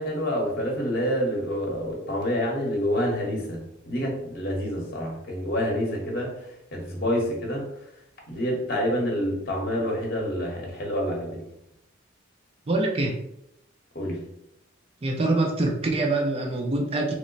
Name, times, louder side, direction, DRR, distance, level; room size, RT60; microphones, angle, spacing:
voice 1, 0.0-6.4 6.7-7.7 8.3-11.4 13.9-14.2, equal, 50° left, 0 dB, 0.9 m, -27 dB
voice 2, 12.7-13.2 15.0-17.1, right 2 dB, 30° right, 1 dB, 0.4 m, -24 dB
3.0 x 2.1 x 3.8 m, 0.79 s
head